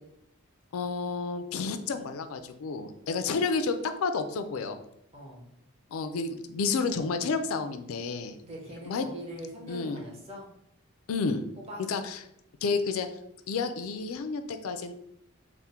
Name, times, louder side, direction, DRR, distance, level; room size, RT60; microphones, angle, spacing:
voice 1, 0.7-4.8 5.9-8.4 8.9-9.1 9.7-10.0 11.1-11.4 11.9-12.2 12.6-13.1 13.5-14.9, left 4 dB, 75° left, 9 dB, 0.4 m, -30 dB
voice 2, 5.1-5.5 8.4-10.5 11.6-11.8, equal, 30° right, -3 dB, 0.9 m, -42 dB
3.5 x 2.1 x 4.2 m, 0.78 s
head